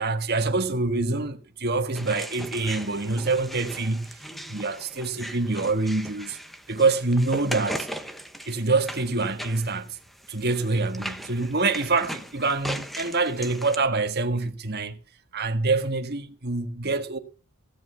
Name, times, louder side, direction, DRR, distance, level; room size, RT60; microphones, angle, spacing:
voice 1, 0.0-4.2 4.5-6.4 6.7-7.9 8.5-10.0 10.3-15.0 15.3-17.2, right 3 dB, 50° right, 1.6 m, -26 dB
sound 1, 1.9-13.8, equal, ahead, 1.1 m, -38 dB
16.5 x 8.2 x 5.6 m
head